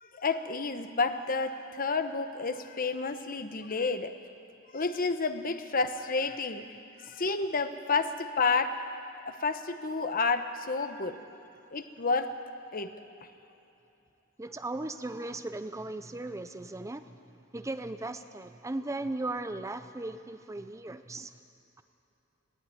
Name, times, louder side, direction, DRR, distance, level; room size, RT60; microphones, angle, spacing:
voice 1, 0.0-4.1 4.7-6.6 7.0-8.8 9.2-11.2 11.7-12.3 12.7-12.9, left 4 dB, 45° left, 9 dB, 1.0 m, -30 dB
voice 2, 14.4-17.2 17.5-21.3, right 2 dB, 15° right, 10 dB, 0.5 m, -37 dB
19.0 x 16.0 x 9.8 m, 2.8 s
head